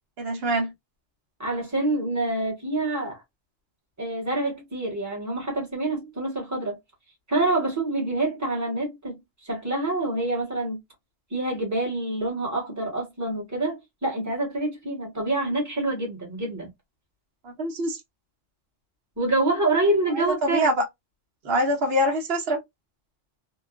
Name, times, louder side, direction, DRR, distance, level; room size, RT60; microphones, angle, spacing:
voice 1, 0.2-0.7 17.4-18.0 20.1-20.8 21.4-22.6, equal, 55° right, 1.1 m, -24 dB
voice 2, 1.4-3.2 4.0-6.8 7.3-9.2 9.4-10.8 11.3-16.7 19.2-20.7, right 2 dB, 15° right, 1.3 m, -26 dB
2.9 x 2.2 x 2.3 m
omnidirectional pair, 1.3 m